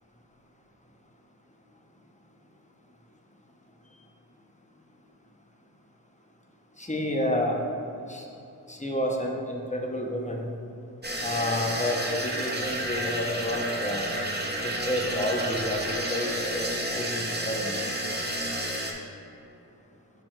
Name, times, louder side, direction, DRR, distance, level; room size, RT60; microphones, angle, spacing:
voice 1, 6.8-7.6 8.1-8.3 8.7-10.5 11.2-14.1 14.6-17.8, left 1 dB, 15° left, 0 dB, 1.0 m, -30 dB
sound 1, 11.0-18.9, right 1 dB, 25° right, 1.1 m, -31 dB
6.7 x 3.4 x 6.1 m, 2.8 s
cardioid pair, 45°, 42 cm